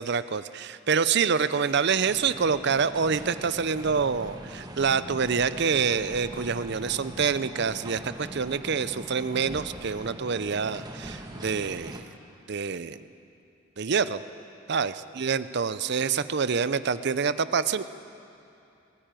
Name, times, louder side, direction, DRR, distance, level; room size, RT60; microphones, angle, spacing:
voice 1, 0.0-12.1 12.5-13.0 13.8-14.2 14.7-17.8, right 6 dB, 55° right, 14 dB, 0.6 m, -26 dB
sound 1, 2.1-12.0, right 1 dB, 20° right, 1.4 m, -41 dB
20.0 x 16.0 x 9.1 m, 2.7 s
head